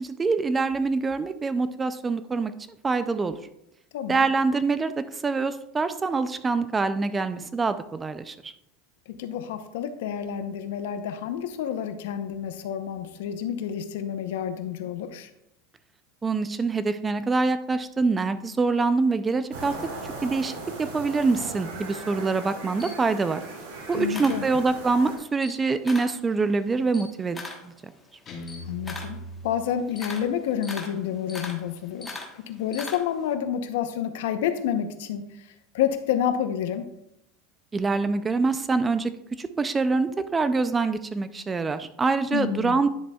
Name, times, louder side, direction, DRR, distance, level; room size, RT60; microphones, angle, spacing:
voice 1, 0.0-2.5 2.8-3.4 4.1-8.5 16.2-19.8 20.2-20.5 20.8-23.4 23.9-27.9 37.7-39.1 39.4-42.9, right 4 dB, 15° right, 12 dB, 0.4 m, -25 dB
voice 2, 3.9-4.3 9.1-15.3 23.9-24.4 28.6-35.5 35.7-36.9 42.3-42.8, left 9 dB, 80° left, 9 dB, 0.7 m, -29 dB
sound 1, 19.5-25.2, right 3 dB, 90° right, 2.5 m, -38 dB
Camera, 22.5-25.0 25.3-26.2 26.6-33.3, left 3 dB, 10° left, 1.2 m, -40 dB
Guitar, 28.3-30.3, equal, 30° left, 1.6 m, -40 dB
10.0 x 7.0 x 2.3 m, 0.81 s
supercardioid pair, 140°, 0 cm